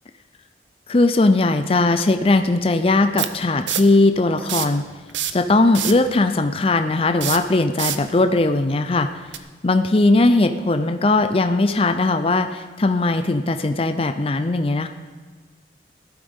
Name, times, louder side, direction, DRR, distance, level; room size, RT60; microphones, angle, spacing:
voice 1, 0.9-4.8 5.3-9.1 9.6-14.9, left 2 dB, 30° left, 8 dB, 0.5 m, -19 dB
sound 1, 1.7-1.8 3.2-4.0 4.4-4.8 5.1-6.1 7.1-8.1 9.3-9.4, right 10 dB, 85° right, 0.7 m, -26 dB
17.0 x 12.0 x 3.6 m, 1.4 s
head